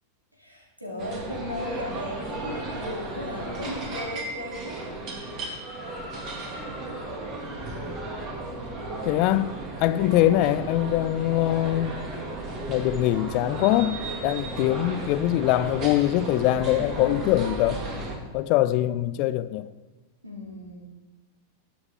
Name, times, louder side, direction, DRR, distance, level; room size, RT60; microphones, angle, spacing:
voice 1, 0.4-4.8 9.9-10.3 14.4-14.5 20.2-20.8, left 1 dB, 85° right, -1 dB, 2.9 m, -36 dB
sound 1, 1.0-18.2, right 2 dB, 35° right, 2.7 m, -35 dB
voice 2, 9.0-9.5 9.8-12.1 12.7-17.8 18.3-19.7, left 14 dB, 45° left, 14 dB, 0.5 m, -23 dB
20.0 x 7.9 x 3.7 m, 1.2 s
figure-of-eight pair, 90°, 0 cm